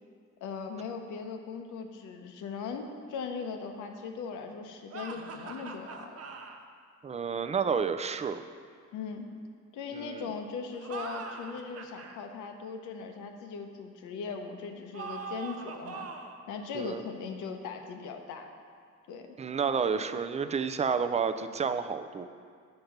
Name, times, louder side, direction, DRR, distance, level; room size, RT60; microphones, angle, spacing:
voice 1, 0.4-6.1 8.9-9.3 9.7-16.1 16.5-18.5 19.1-19.3, left 5 dB, 90° left, 5 dB, 0.8 m, -39 dB
sound 1, 4.9-6.6 10.7-12.2 14.9-16.4, right 4 dB, 50° right, 0.7 m, -41 dB
voice 2, 7.0-8.4 9.9-10.2 16.7-17.0 19.4-22.3, right 6 dB, 25° right, 10 dB, 0.3 m, -30 dB
6.6 x 5.3 x 5.8 m, 2.1 s
cardioid pair, 90°, 30 cm